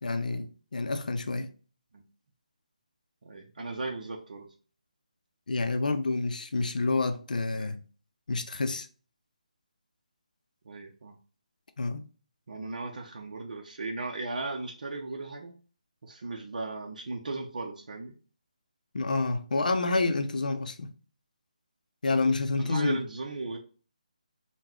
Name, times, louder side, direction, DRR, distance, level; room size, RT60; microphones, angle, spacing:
voice 1, 0.0-0.5 0.7-1.5 5.5-7.8 8.3-8.9 11.8-12.0 18.9-20.9 22.0-23.0, left 3 dB, 75° left, 0.5 m, -28 dB
voice 2, 3.2-4.5 7.5-7.7 10.6-11.1 12.5-15.5 16.0-18.1 22.6-23.6, right 3 dB, 65° right, 0.6 m, -37 dB
3.7 x 2.2 x 2.9 m
figure-of-eight pair, 160°, 4 cm